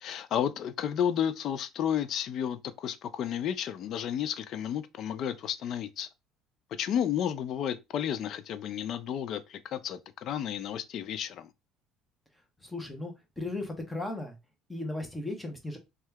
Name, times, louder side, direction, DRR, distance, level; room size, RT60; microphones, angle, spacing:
voice 1, 0.0-6.1 6.8-11.5, left 9 dB, 50° left, 0.4 m, -32 dB
voice 2, 12.6-14.3 14.7-15.8, left 2 dB, 10° left, 0.8 m, -36 dB
2.8 x 2.3 x 3.3 m
cardioid pair, 140°, 0 cm